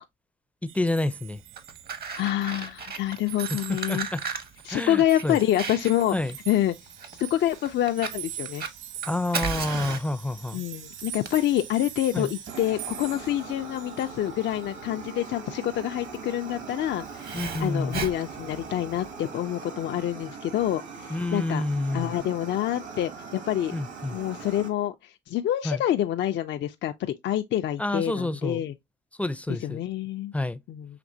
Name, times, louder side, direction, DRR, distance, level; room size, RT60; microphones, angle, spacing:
voice 1, 0.6-1.4 3.5-4.2 4.7-5.4 6.1-6.4 9.1-10.6 12.1-12.3 17.3-18.0 21.1-22.2 23.7-24.2 25.6-25.8 27.8-28.6 29.2-29.8 30.3-30.6, left 2 dB, 5° left, 0.4 m, -29 dB
sound 1, 0.7-2.5 2.8-14.1, right 12 dB, 85° right, 0.4 m, -43 dB
Fire, 1.4-19.1, right 5 dB, 50° right, 1.0 m, -37 dB
voice 2, 2.2-4.1 4.7-6.2 6.5-6.7 7.2-8.6 10.5-21.6 21.9-23.7 24.1-28.7 29.6-30.3 30.7-30.9, left 12 dB, 65° left, 0.4 m, -27 dB
Fire 2, 6.1-24.7, right 5 dB, 70° right, 1.7 m, -43 dB
5.9 x 2.9 x 2.6 m
cardioid pair, 90°, 20 cm